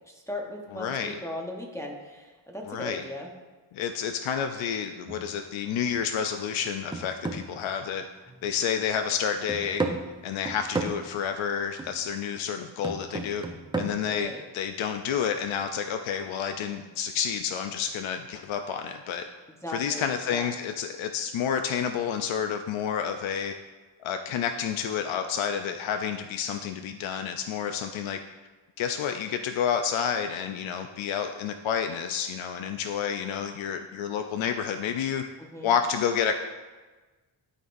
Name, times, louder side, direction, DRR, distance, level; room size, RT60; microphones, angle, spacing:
voice 1, 0.1-3.3 14.1-14.4 19.6-20.5 35.4-35.7, left 1 dB, 5° left, -1 dB, 0.9 m, -38 dB
voice 2, 0.7-1.1 2.7-3.0 3.7-8.1 8.4-9.8 10.2-13.4 13.7-19.2 19.7-23.5 24.0-28.2 28.8-35.2 35.6-36.3, left 7 dB, 75° left, 6 dB, 0.5 m, -29 dB
sound 1, 5.1-5.4 5.9-6.1 6.5-8.5 8.9-9.0 9.5-11.2 11.8-12.0 12.8-13.9, right 2 dB, 10° right, 0.5 m, -34 dB
12.0 x 4.1 x 2.5 m, 1.3 s
wide cardioid pair, 95°, 47 cm